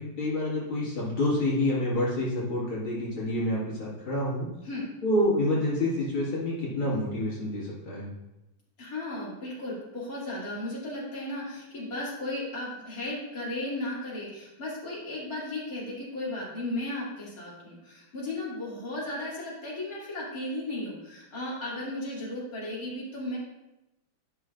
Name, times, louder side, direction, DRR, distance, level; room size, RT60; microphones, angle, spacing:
voice 1, 0.0-4.5 5.0-8.1, left 1 dB, 75° left, -7 dB, 2.9 m, -28 dB
voice 2, 8.8-23.4, left 1 dB, 45° left, -7 dB, 3.0 m, -35 dB
13.0 x 5.8 x 2.5 m, 0.95 s
omnidirectional pair, 2.3 m